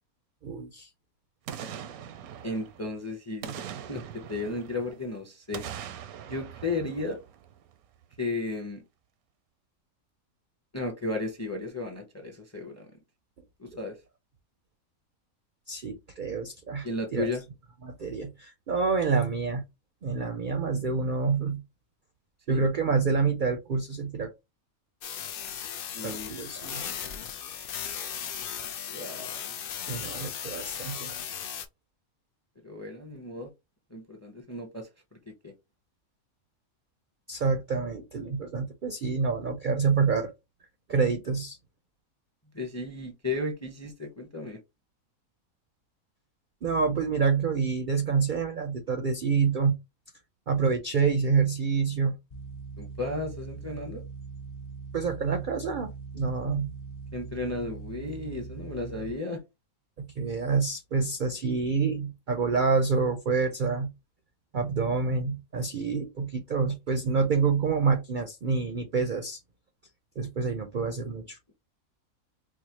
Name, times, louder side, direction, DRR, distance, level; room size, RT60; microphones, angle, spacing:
voice 1, 0.4-0.9 13.7-13.8 15.7-16.9 17.1-17.3 17.8-19.6 20.0-21.6 22.5-24.3 26.0-26.8 29.8-31.2 37.3-40.3 40.9-41.6 46.6-49.8 50.5-52.2 54.9-56.7 60.0-63.9 64.5-69.4 70.2-71.4, right 5 dB, 60° right, 0.5 m, -27 dB
Boom, 1.5-3.0 3.4-5.1 5.5-7.8 8.1-8.2, right 9 dB, 85° right, 1.0 m, -41 dB
voice 2, 2.4-4.0 4.3-5.6 6.2-7.2 8.2-8.8 10.7-12.9 13.6-13.9 16.8-17.4 22.5-22.7 25.9-26.3 26.7-27.1 28.9-29.3 32.6-33.5 33.9-34.9 35.4-35.5 42.5-44.6 52.8-54.0 57.1-59.4, left 2 dB, 20° left, 0.5 m, -34 dB
sound 1, 25.0-31.7, left 8 dB, 75° left, 0.5 m, -37 dB
sound 2, 52.3-59.1, right 5 dB, 40° left, 0.8 m, -41 dB
4.7 x 2.1 x 2.8 m
omnidirectional pair, 1.5 m